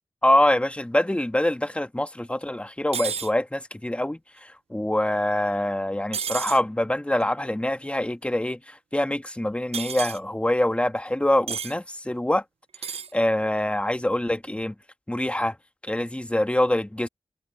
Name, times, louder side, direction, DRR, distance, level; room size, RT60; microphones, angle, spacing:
voice 1, 0.2-12.4 13.1-14.7 15.1-15.6 15.8-17.1, left 1 dB, 10° left, 1.3 m, -25 dB
sound 1, 2.9-3.3 6.1-6.6 9.7-10.2 11.5-11.7 12.7-13.1, right 6 dB, 80° right, 0.4 m, -31 dB
wide cardioid pair, 65°, 10 cm